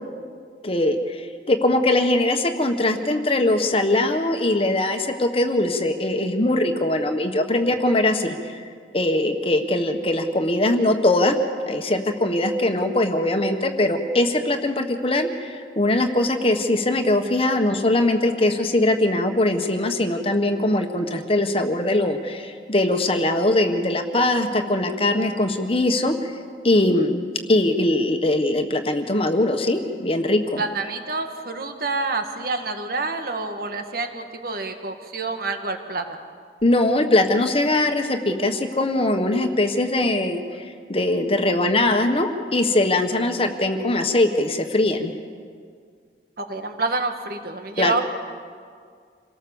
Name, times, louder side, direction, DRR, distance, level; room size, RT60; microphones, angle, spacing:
voice 1, 0.6-8.6 8.9-11.4 11.7-26.3 26.6-30.6 36.6-45.1 47.8-48.0, left 1 dB, 35° left, 5 dB, 1.4 m, -21 dB
voice 2, 30.6-36.2 46.4-48.0, right 3 dB, 55° right, 6 dB, 1.7 m, -28 dB
27.5 x 18.5 x 7.2 m, 2.1 s
head